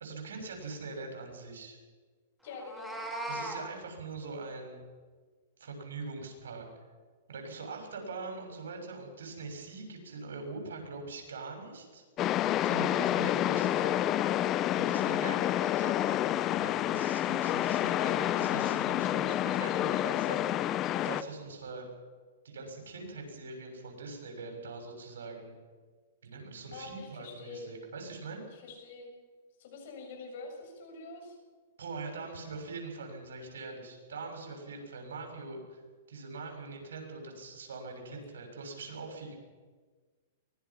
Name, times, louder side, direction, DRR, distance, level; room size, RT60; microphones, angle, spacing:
voice 1, 0.0-1.8 3.2-4.8 5.6-6.7 7.3-12.0 12.6-14.0 14.8-21.9 22.4-25.6 26.2-28.4 31.8-35.8 36.1-39.3, right 3 dB, 85° right, 3 dB, 6.6 m, -42 dB
voice 2, 2.4-3.0 26.7-27.7 28.5-29.1 29.6-31.4 38.1-38.2, left 3 dB, 60° left, 3 dB, 7.0 m, -45 dB
Meow, 2.5-3.6, right 1 dB, ahead, 3.4 m, -38 dB
sound 1, 12.2-21.2, left 13 dB, 30° left, 0.6 m, -29 dB
23.5 x 19.5 x 5.9 m, 1.4 s
hypercardioid pair, 145°, 0 cm